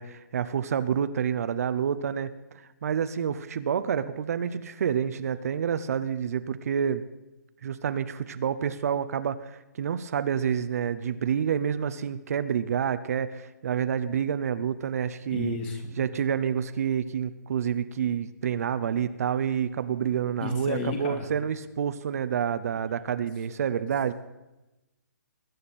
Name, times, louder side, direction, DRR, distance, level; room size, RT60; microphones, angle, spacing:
voice 1, 0.0-7.0 7.6-15.6 16.0-24.1, right 8 dB, 55° right, 12 dB, 0.7 m, -28 dB
voice 2, 15.3-16.0 20.4-21.3, left 4 dB, 30° left, 4 dB, 2.4 m, -32 dB
21.0 x 9.4 x 4.2 m, 1.0 s
hypercardioid pair, 150°, 10 cm